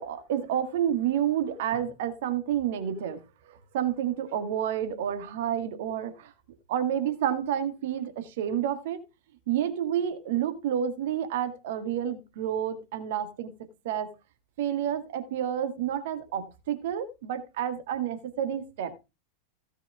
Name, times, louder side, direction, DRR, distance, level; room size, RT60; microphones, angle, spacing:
voice 1, 0.0-3.2 3.7-6.3 6.7-9.0 9.5-13.5 13.9-14.1 14.6-18.9, right 10 dB, 55° right, 1.8 m, -29 dB
16.0 x 7.0 x 3.5 m
figure-of-eight pair, 90°, 0 cm